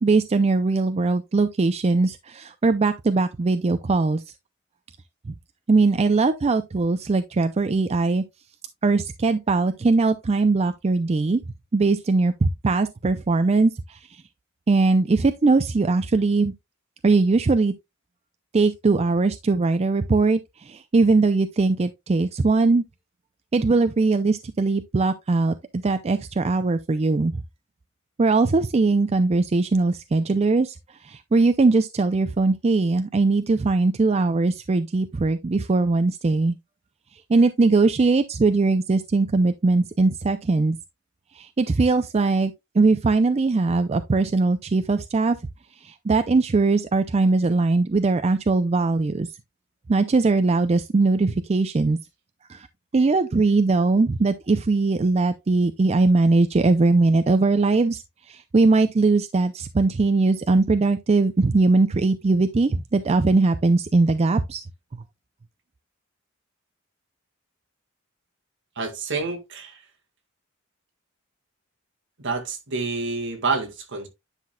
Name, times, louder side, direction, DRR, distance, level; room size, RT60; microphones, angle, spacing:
voice 1, 0.0-4.2 5.3-5.4 5.7-8.2 8.8-11.4 11.7-14.2 14.7-16.5 17.0-17.7 18.5-22.8 23.5-27.4 28.2-36.6 37.3-40.8 41.3-45.4 45.8-49.3 49.9-52.0 52.5-52.7 52.9-64.6 64.9-65.0, right 3 dB, 30° right, 0.4 m, -20 dB
voice 2, 68.8-69.8 72.2-74.1, right 4 dB, 60° right, 1.9 m, -28 dB
9.9 x 5.9 x 2.2 m
head